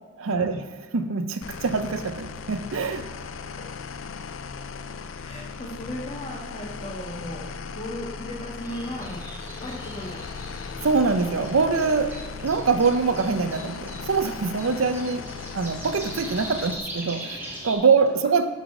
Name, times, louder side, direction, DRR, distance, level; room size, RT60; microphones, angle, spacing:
voice 1, 0.2-3.1 10.8-15.3 15.5-18.5, right 4 dB, 70° right, 10 dB, 0.6 m, -24 dB
sound 1, 1.4-16.8, left 5 dB, 65° left, 0.4 m, -38 dB
voice 2, 5.2-9.2 9.6-10.2 17.4-17.6, left 1 dB, 30° left, -2 dB, 1.5 m, -36 dB
sound 2, 8.6-17.7, right 1 dB, 10° right, 1.2 m, -40 dB
9.2 x 4.1 x 6.0 m, 1.4 s
head